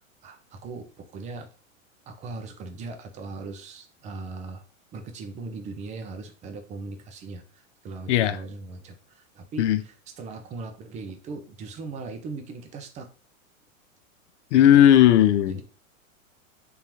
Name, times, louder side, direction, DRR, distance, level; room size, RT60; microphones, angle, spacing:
voice 1, 0.2-1.5 2.1-4.6 4.9-13.1 14.5-14.9 15.5-15.6, right 3 dB, 20° right, 0.4 m, -39 dB
voice 2, 14.5-15.6, left 11 dB, 60° left, 0.6 m, -16 dB
3.7 x 2.8 x 3.0 m
hypercardioid pair, 115°, 41 cm